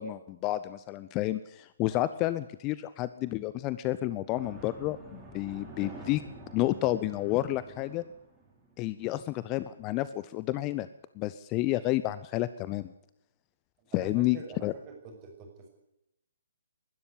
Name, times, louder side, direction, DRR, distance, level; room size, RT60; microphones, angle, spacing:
voice 1, 0.0-6.2 6.5-8.0 8.8-10.9 11.2-12.9 13.9-14.7, left 16 dB, 25° left, 15 dB, 0.7 m, -30 dB
sound 1, 4.3-8.8, right 3 dB, 10° right, 6.4 m, -48 dB
voice 2, 13.8-15.7, right 4 dB, 25° right, 2 dB, 6.3 m, -46 dB
21.0 x 12.5 x 10.0 m, 0.84 s
figure-of-eight pair, 130°, 0 cm